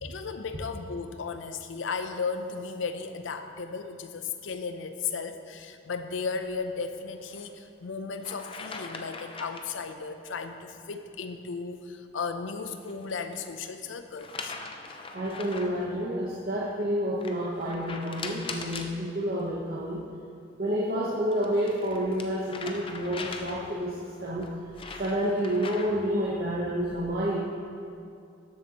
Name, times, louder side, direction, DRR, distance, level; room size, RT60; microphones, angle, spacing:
voice 1, 0.0-14.5, left 5 dB, 80° left, 8 dB, 0.5 m, -35 dB
sound 1, 7.2-7.5 8.2-9.7 12.6-13.5 14.2-15.8 17.2-18.9 21.0-23.8 24.4-26.1, left 4 dB, 25° left, 0.5 m, -41 dB
voice 2, 15.1-20.0 20.6-24.5 25.0-27.4, equal, 45° right, -6 dB, 1.0 m, -29 dB
13.0 x 7.6 x 2.9 m, 2.4 s
head